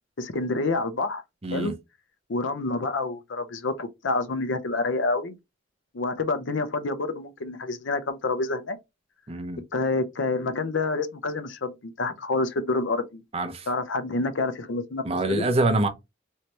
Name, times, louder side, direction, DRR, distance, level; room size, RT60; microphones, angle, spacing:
voice 1, 0.2-1.2 1.5-1.7 2.3-5.4 5.9-8.8 9.7-13.2 13.7-15.0 15.3-15.5, left 3 dB, 75° left, 0.6 m, -28 dB
voice 2, 1.4-1.7 9.3-9.6 13.3-13.7 15.0-15.9, right 2 dB, 30° right, 0.6 m, -25 dB
3.3 x 2.7 x 2.9 m
head